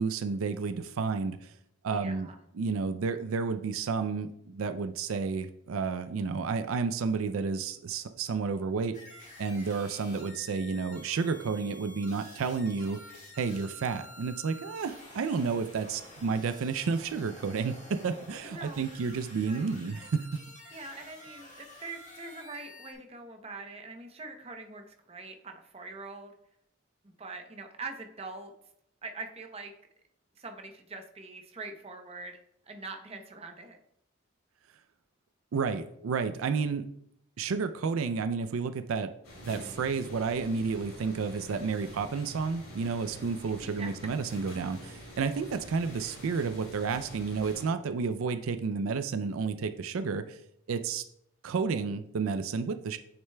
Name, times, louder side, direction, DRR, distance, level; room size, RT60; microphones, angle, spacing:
voice 1, 0.0-1.5 1.8-2.3 2.5-8.9 9.4-13.0 13.4-20.4 35.5-36.9 37.4-39.1 39.4-50.4 50.7-51.0 51.4-53.0, right 5 dB, 80° right, 10 dB, 0.4 m, -31 dB
voice 2, 1.9-2.4 18.4-19.0 19.5-19.6 20.7-26.3 27.0-28.5 29.0-29.7 30.4-32.4 32.6-33.8 43.6-43.9, right 3 dB, 30° right, 4 dB, 0.7 m, -43 dB
sound 1, 8.9-22.9, left 1 dB, 35° left, 1.6 m, -50 dB
sound 2, 39.2-47.6, equal, 75° left, 2.7 m, -47 dB
8.8 x 6.5 x 2.2 m, 0.73 s
head